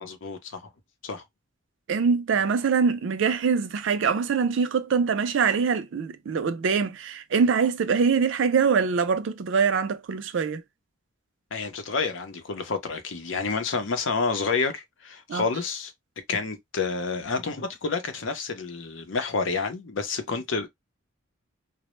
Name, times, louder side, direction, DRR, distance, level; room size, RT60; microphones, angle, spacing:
voice 1, 0.0-0.6 1.0-1.2 11.5-15.9 16.3-20.7, left 4 dB, 70° left, 0.6 m, -29 dB
voice 2, 1.9-10.6 15.3-15.4, right 5 dB, 65° right, 0.4 m, -23 dB
2.1 x 2.0 x 2.9 m
head